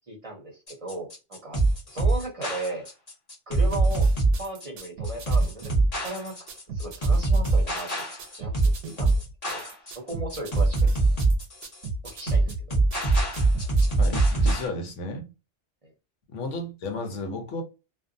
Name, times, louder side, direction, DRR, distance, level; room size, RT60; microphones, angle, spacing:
voice 1, 0.1-1.6 1.9-2.9 3.5-4.1 4.4-6.4 6.7-8.0 8.3-8.5 8.8-9.2 9.5-10.8 12.0-12.8 15.8-15.9, right 2 dB, 35° right, 0.6 m, -36 dB
sound 1, 0.7-14.7, right 2 dB, 35° left, 1.0 m, -23 dB
sound 2, 3.7-13.8, right 3 dB, 90° right, 0.9 m, -37 dB
voice 2, 14.0-15.3 16.3-17.6, left 2 dB, 85° left, 1.1 m, -33 dB
2.6 x 2.2 x 2.5 m
omnidirectional pair, 1.2 m